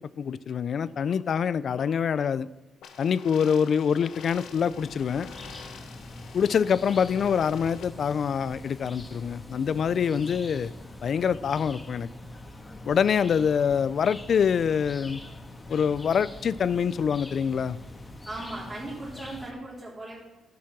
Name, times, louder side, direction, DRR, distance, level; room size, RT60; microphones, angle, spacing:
voice 1, 0.2-2.5 3.0-5.3 6.3-10.7 11.0-12.1 12.9-15.2 15.7-17.8, left 7 dB, 55° left, 18 dB, 0.4 m, -25 dB
sound 1, 2.8-7.8, left 7 dB, 85° left, 1.0 m, -47 dB
sound 2, 3.9-19.5, left 1 dB, 20° left, 1.5 m, -44 dB
voice 2, 18.2-20.2, right 2 dB, 20° right, -7 dB, 3.5 m, -38 dB
11.0 x 7.1 x 6.0 m, 1.0 s
cardioid pair, 90°, 0 cm